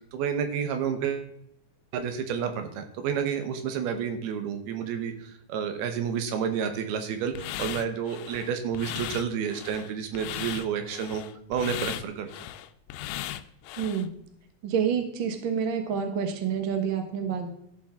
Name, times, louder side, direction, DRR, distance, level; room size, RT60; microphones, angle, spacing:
voice 1, 0.1-1.3 1.9-5.1 5.5-11.2 11.5-12.3, right 7 dB, 85° right, 7 dB, 3.2 m, -30 dB
sound 1, 7.3-14.1, left 13 dB, 85° left, 2.5 m, -37 dB
voice 2, 13.8-14.1 14.6-17.5, right 7 dB, 55° right, 5 dB, 1.4 m, -28 dB
13.5 x 7.3 x 3.8 m, 0.74 s
omnidirectional pair, 4.4 m